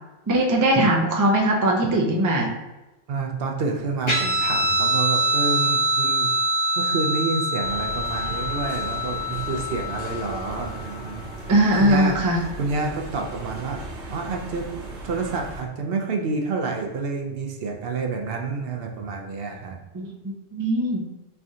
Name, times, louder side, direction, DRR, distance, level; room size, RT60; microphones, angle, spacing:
voice 1, 0.3-2.5 11.5-12.4 19.9-21.1, right 1 dB, 30° right, 0 dB, 0.3 m, -20 dB
voice 2, 3.1-6.3 6.8-11.5 11.8-12.2 12.6-13.8 14.1-14.7 15.0-19.8, right 4 dB, 65° right, 2 dB, 0.7 m, -28 dB
Guitar, 4.1-11.0, equal, 30° left, 0.7 m, -24 dB
sound 1, 7.6-15.6, right 2 dB, 80° right, 1.1 m, -37 dB
3.5 x 3.3 x 2.7 m, 1.0 s
omnidirectional pair, 1.1 m